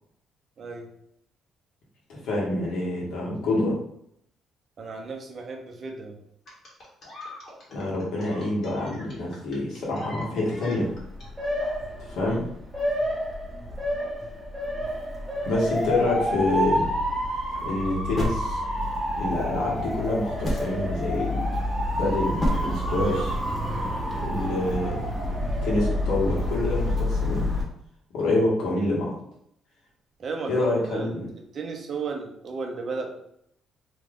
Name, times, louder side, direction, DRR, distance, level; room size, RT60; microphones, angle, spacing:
voice 1, 0.6-0.9 4.8-6.2 12.2-12.3 30.2-30.5 30.8-33.2, right 4 dB, 45° right, 3 dB, 0.7 m, -34 dB
voice 2, 2.1-3.7 7.7-10.9 12.0-12.4 15.4-16.9 17.6-18.6 19.1-21.5 21.9-23.4 24.2-25.1 25.6-27.5 28.1-29.1 30.5-31.3, left 2 dB, 80° left, -4 dB, 1.4 m, -27 dB
sound 1, 6.5-11.3 12.4-12.6, left 1 dB, 50° left, 1.5 m, -42 dB
Motor vehicle (road) / Siren, 10.8-27.6, left 1 dB, 15° right, 1.0 m, -28 dB
sound 2, 17.4-17.7 18.2-19.0 19.9-20.0 20.4-20.9 21.7-22.0 22.4-22.6, equal, 30° left, 1.2 m, -28 dB
3.1 x 2.4 x 3.5 m, 0.73 s
cardioid pair, 105°, 0 cm